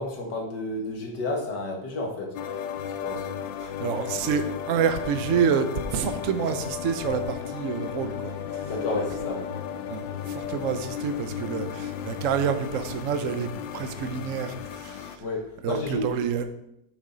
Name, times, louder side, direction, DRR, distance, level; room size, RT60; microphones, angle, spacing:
voice 1, 0.0-2.4 2.9-3.3 8.6-9.5 15.2-16.2, left 2 dB, 70° left, 0 dB, 2.1 m, -31 dB
sound 1, 2.4-15.2, left 9 dB, 85° left, 1.4 m, -34 dB
voice 2, 3.6-8.7 9.9-15.2 15.6-16.5, right 7 dB, 60° right, 8 dB, 0.9 m, -28 dB
8.7 x 6.8 x 3.9 m, 0.82 s
omnidirectional pair, 2.0 m